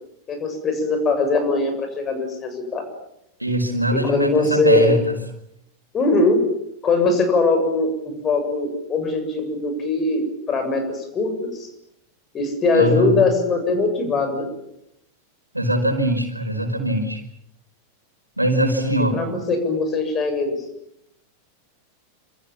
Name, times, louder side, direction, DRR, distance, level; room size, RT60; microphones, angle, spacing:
voice 1, 0.3-2.8 3.9-4.9 5.9-6.4 6.8-11.7 12.3-14.5 19.1-20.5, left 3 dB, 25° left, 6 dB, 7.4 m, -21 dB
voice 2, 3.4-5.0 12.7-13.1 15.5-17.2 18.4-19.2, equal, 85° right, 4 dB, 5.0 m, -21 dB
27.5 x 27.5 x 7.4 m, 0.79 s
figure-of-eight pair, 90°, 0 cm